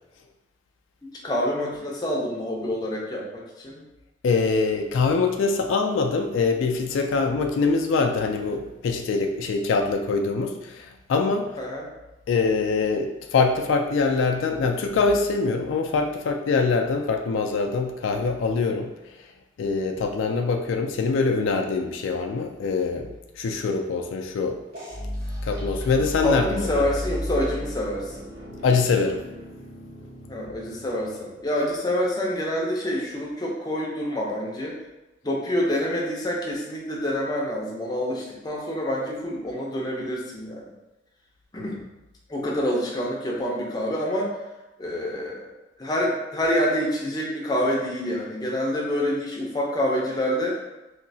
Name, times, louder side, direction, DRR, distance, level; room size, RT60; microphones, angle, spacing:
voice 1, 1.0-3.8 11.6-11.9 26.2-28.3 30.3-34.8 35.2-40.7 41.5-41.8 42.3-44.4 44.8-45.5 45.8-50.6, equal, 20° left, -3 dB, 0.5 m, -27 dB
voice 2, 4.2-11.6 12.3-19.2 19.6-23.1 23.4-24.6 25.4-26.8 28.6-29.2 41.6-41.7, left 4 dB, 80° left, 4 dB, 0.3 m, -24 dB
sound 1, 24.7-31.3, left 1 dB, 50° right, 1.1 m, -34 dB
3.1 x 2.8 x 2.6 m, 1.0 s
head